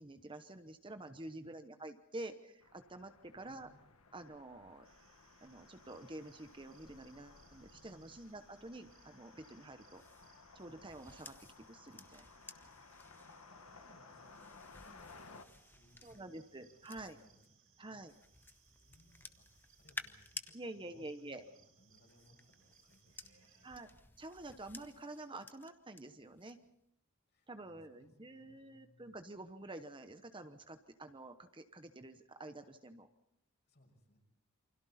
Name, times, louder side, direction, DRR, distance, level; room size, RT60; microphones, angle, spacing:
voice 1, 0.0-3.7 4.1-4.9 5.4-10.0 10.5-12.3 16.0-17.2 17.8-18.1 20.5-21.4 23.6-23.9 24.2-26.6 27.5-33.1, right 2 dB, 25° right, 8 dB, 1.0 m, -49 dB
voice 2, 1.3-1.7 3.4-3.9 7.7-8.1 12.8-18.0 18.8-23.7 27.3-29.1 33.7-34.2, left 1 dB, 50° left, 2 dB, 6.0 m, -67 dB
sound 1, 2.6-15.4, left 4 dB, 85° left, 1.7 m, -59 dB
sound 2, 4.8-23.8, right 7 dB, 65° right, 6.8 m, -70 dB
sound 3, 9.9-17.5 18.1-20.5 21.8-26.0 26.4-26.7, left 2 dB, 10° left, 0.9 m, -54 dB
28.5 x 25.5 x 4.3 m, 0.80 s
head